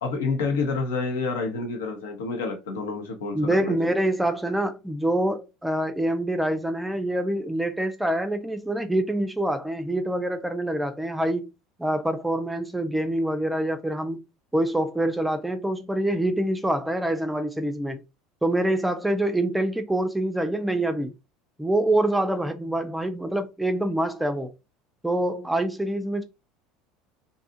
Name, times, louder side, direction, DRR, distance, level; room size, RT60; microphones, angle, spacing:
voice 1, 0.0-3.8, left 4 dB, 85° left, 0.8 m, -28 dB
voice 2, 3.3-11.5 11.8-14.2 14.5-18.0 18.4-21.1 21.6-24.5 25.0-26.2, right 1 dB, 5° right, 0.4 m, -25 dB
2.6 x 2.3 x 2.7 m
hypercardioid pair, 90°, 0 cm